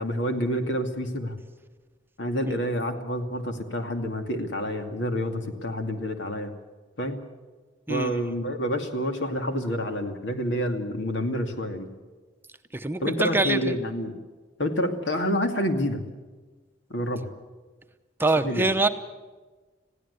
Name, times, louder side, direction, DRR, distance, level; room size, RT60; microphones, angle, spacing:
voice 1, 0.0-1.4 2.2-6.5 7.0-7.2 7.9-11.9 13.0-14.1 14.6-16.0 16.9-17.3 18.4-18.7, equal, 75° left, 5 dB, 2.5 m, -28 dB
voice 2, 12.7-13.7 18.2-18.9, right 2 dB, 10° right, 7 dB, 0.8 m, -24 dB
21.5 x 16.0 x 8.3 m, 1.3 s
head